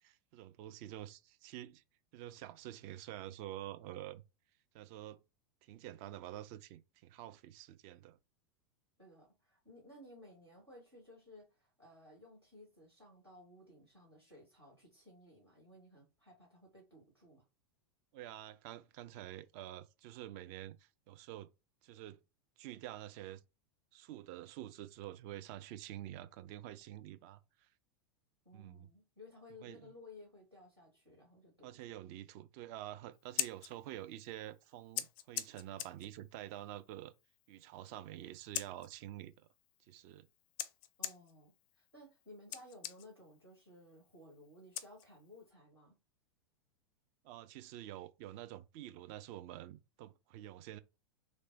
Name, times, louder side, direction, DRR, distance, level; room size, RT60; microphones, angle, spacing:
voice 1, 0.0-1.8 2.1-4.2 4.7-5.2 5.6-8.2 18.1-21.5 21.8-22.2 22.6-23.4 23.9-27.7 28.5-28.9 29.6-29.9 31.6-37.1 37.5-39.5 39.8-40.3 47.2-50.8, right 13 dB, 40° right, 0.4 m, -48 dB
voice 2, 9.0-17.4 28.4-31.9 41.0-46.0, left 1 dB, 90° right, 1.6 m, -58 dB
Scissors, 33.1-45.5, left 12 dB, 35° left, 0.4 m, -46 dB
3.2 x 2.1 x 3.9 m
figure-of-eight pair, 90°, 13 cm